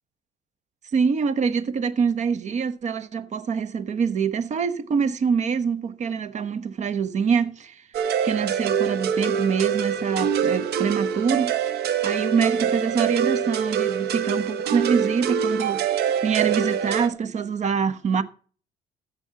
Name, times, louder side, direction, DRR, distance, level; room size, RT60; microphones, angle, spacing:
voice 1, 0.9-7.8 8.2-11.8 12.0-15.8 16.2-18.2, right 6 dB, 45° right, 1.1 m, -25 dB
sound 1, 7.9-17.1, right 8 dB, 70° right, 1.1 m, -25 dB
15.0 x 5.3 x 6.9 m
cardioid pair, 110°, 17 cm